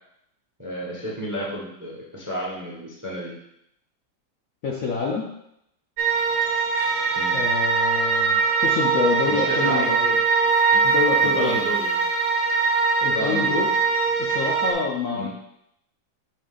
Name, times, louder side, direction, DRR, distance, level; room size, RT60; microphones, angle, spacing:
voice 1, 0.6-3.3 7.1-7.3 9.3-10.2 10.7-10.8 11.1-12.0 13.1-13.6 15.1-15.3, right 1 dB, 15° right, -4 dB, 0.8 m, -31 dB
voice 2, 4.6-5.3 7.3-10.0 10.8-11.6 13.0-13.7 14.2-15.3, left 5 dB, 60° left, -2 dB, 1.0 m, -27 dB
sound 1, 6.0-14.7, right 5 dB, 50° right, 1.1 m, -22 dB
Percussion / Church bell, 6.8-11.2, equal, 40° left, 2.4 m, -39 dB
6.3 x 6.2 x 2.5 m, 0.78 s
omnidirectional pair, 2.0 m